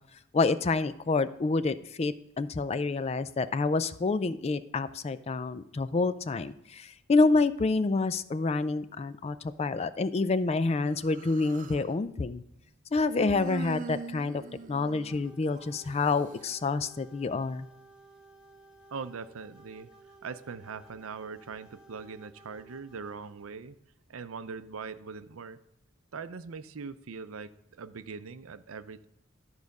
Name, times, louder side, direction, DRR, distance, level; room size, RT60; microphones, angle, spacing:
voice 1, 0.3-12.4 12.9-14.4 14.7-17.7, left 3 dB, 30° left, 13 dB, 0.3 m, -28 dB
Human voice, 10.9-11.9 13.0-15.8, right 4 dB, 40° right, 0.4 m, -41 dB
sound 1, 15.1-23.5, right 3 dB, 5° right, 1.2 m, -57 dB
voice 2, 18.9-19.9 20.2-23.8 24.1-25.6 26.1-29.1, right 5 dB, 85° right, 13 dB, 0.6 m, -41 dB
12.5 x 4.8 x 5.3 m, 0.85 s
head